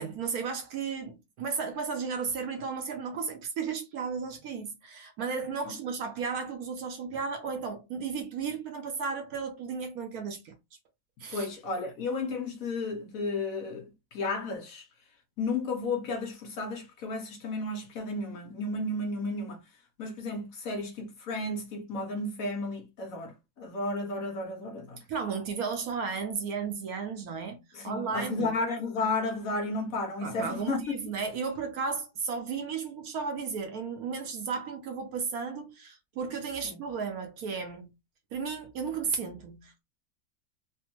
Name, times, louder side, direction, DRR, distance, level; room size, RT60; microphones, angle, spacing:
voice 1, 0.0-10.6 11.2-11.5 25.1-28.5 30.2-37.9 38.3-39.8, right 5 dB, 70° right, 1.0 m, -34 dB
voice 2, 11.3-14.9 15.4-19.7 20.0-25.0 27.7-30.8 36.6-36.8, left 3 dB, 65° left, 1.0 m, -33 dB
3.3 x 2.0 x 2.9 m
omnidirectional pair, 1.8 m